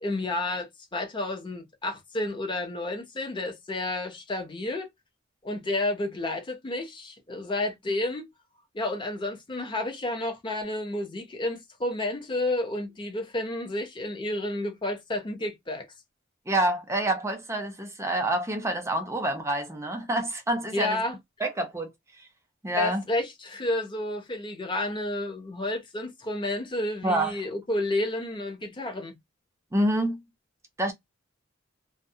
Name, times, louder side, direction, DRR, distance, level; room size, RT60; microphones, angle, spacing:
voice 1, 0.0-4.9 5.4-8.3 8.7-15.9 20.7-21.2 22.7-29.2, left 2 dB, 25° left, 0.7 m, -31 dB
voice 2, 16.5-21.0 21.4-21.9 22.6-23.0 27.0-27.3 29.7-30.2 30.8-30.9, right 1 dB, 15° right, 0.6 m, -27 dB
2.2 x 2.1 x 2.6 m
head